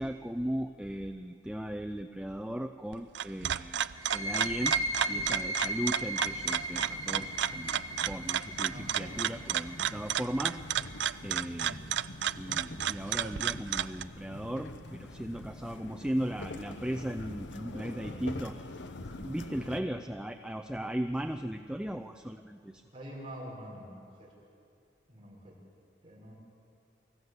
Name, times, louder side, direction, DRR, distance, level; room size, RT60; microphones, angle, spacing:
voice 1, 0.0-3.8 4.1-4.7 5.1-7.8 8.0-10.6 11.2-11.9 12.4-18.5 19.2-22.8, equal, 5° right, 6 dB, 0.5 m, -37 dB
sound 1, 2.9-14.0, right 10 dB, 65° right, 0.4 m, -33 dB
sound 2, 4.0-11.4, equal, 20° left, 1.1 m, -37 dB
sound 3, 6.2-19.8, left 2 dB, 70° left, 1.0 m, -45 dB
voice 2, 8.7-9.0 11.5-11.8 17.7-18.2 19.6-19.9 21.0-21.5 22.9-24.3 25.1-25.5 26.0-26.3, equal, 25° right, -4 dB, 6.0 m, -47 dB
24.0 x 15.0 x 8.2 m, 2.5 s
head